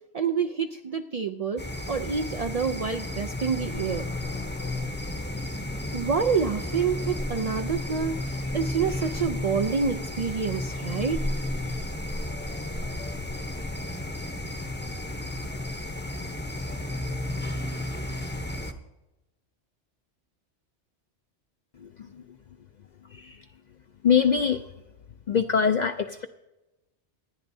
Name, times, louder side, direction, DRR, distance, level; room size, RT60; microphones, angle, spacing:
voice 1, 0.1-4.1 5.9-11.3 12.7-12.8, right 6 dB, 70° right, 7 dB, 0.3 m, -28 dB
sound 1, 1.6-18.7, left 1 dB, 10° left, 0.6 m, -33 dB
voice 2, 21.8-22.4 23.1-23.5 24.0-24.7 25.3-26.3, left 7 dB, 60° left, 8 dB, 0.4 m, -24 dB
26.0 x 9.5 x 2.7 m, 0.99 s
omnidirectional pair, 1.2 m